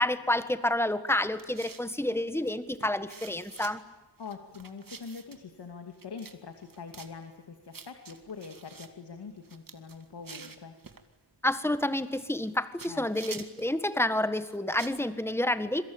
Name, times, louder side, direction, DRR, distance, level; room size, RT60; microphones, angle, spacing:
voice 1, 0.0-3.8 11.4-15.8, left 1 dB, 5° left, 12 dB, 1.6 m, -29 dB
sound 1, 1.4-1.9 2.4-2.5 2.8-3.7 4.2-5.4 6.0-6.4 6.6-7.1 7.7-8.9 9.4-11.0 11.9-12.5 12.8-13.7 14.4-15.0, right 5 dB, 50° right, 2.3 m, -47 dB
voice 2, 4.2-10.7 12.9-13.1, left 5 dB, 70° left, 5 dB, 2.5 m, -44 dB
26.5 x 23.0 x 8.8 m, 1.1 s
wide cardioid pair, 105°, 42 cm